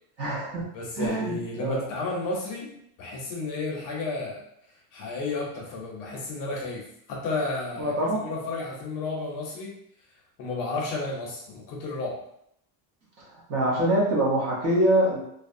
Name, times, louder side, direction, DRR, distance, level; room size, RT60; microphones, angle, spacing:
voice 1, 0.2-0.6 1.0-1.9 7.8-8.3 13.5-15.2, right 1 dB, 35° right, -5 dB, 0.7 m, -24 dB
voice 2, 0.7-4.4 4.9-9.8 10.4-12.2, left 3 dB, 45° left, -2 dB, 0.6 m, -32 dB
2.6 x 2.1 x 2.5 m, 0.72 s
cardioid pair, 160°, 47 cm